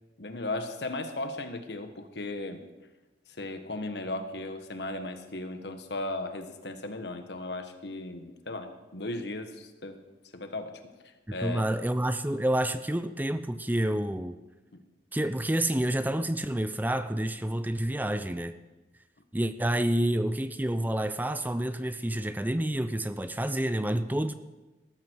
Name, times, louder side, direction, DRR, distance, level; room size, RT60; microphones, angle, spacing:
voice 1, 0.2-2.6 3.4-10.0 10.3-10.8 11.3-11.6 14.7-14.8, left 2 dB, 75° left, 7 dB, 1.6 m, -36 dB
voice 2, 11.3-14.4 15.1-18.5 19.3-24.3, right 1 dB, 10° right, 11 dB, 0.5 m, -28 dB
19.5 x 14.0 x 4.8 m, 1.1 s
head